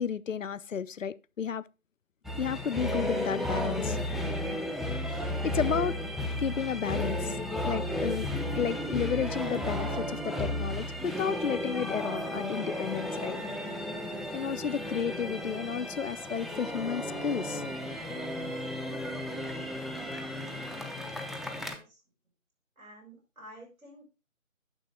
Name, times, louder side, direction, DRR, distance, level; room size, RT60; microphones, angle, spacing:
voice 1, 0.0-1.6 2.4-4.0 5.1-6.0 6.4-7.4 7.6-8.3 8.6-13.4 14.3-17.6, left 7 dB, 65° left, 0.5 m, -32 dB
sound 1, 2.2-21.8, left 1 dB, ahead, 0.5 m, -33 dB
voice 2, 21.5-22.0 22.8-24.0, right 1 dB, 75° right, 6.1 m, -51 dB
9.8 x 6.4 x 3.6 m
figure-of-eight pair, 170°, 41 cm